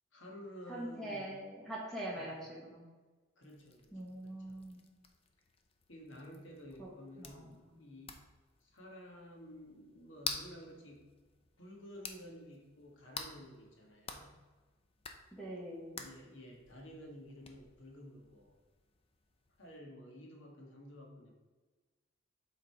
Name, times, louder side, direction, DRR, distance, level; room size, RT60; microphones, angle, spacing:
voice 1, 0.1-1.3 2.1-2.4 3.4-4.6 5.9-8.2 8.6-11.1 11.6-14.4 15.9-18.6 19.6-21.3, equal, 65° left, 0 dB, 1.5 m, -52 dB
voice 2, 0.7-2.8 3.9-4.8 6.8-6.9 7.2-7.5 15.3-16.0, right 1 dB, ahead, -6 dB, 1.2 m, -43 dB
sound 1, 3.4-19.8, left 5 dB, 25° left, 0.5 m, -50 dB
7.5 x 3.8 x 4.6 m, 1.3 s
head